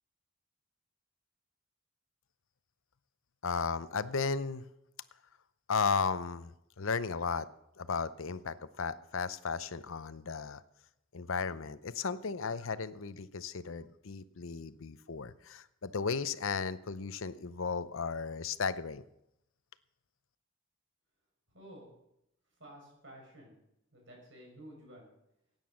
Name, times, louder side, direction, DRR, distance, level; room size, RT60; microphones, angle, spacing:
voice 1, 3.4-4.6 5.7-7.5 7.8-10.6 11.1-19.0, left 5 dB, 75° left, 14 dB, 0.7 m, -35 dB
voice 2, 21.5-21.9 22.6-23.5 23.9-25.1, right 1 dB, 65° right, 0 dB, 6.3 m, -52 dB
16.0 x 9.1 x 6.4 m, 0.82 s
head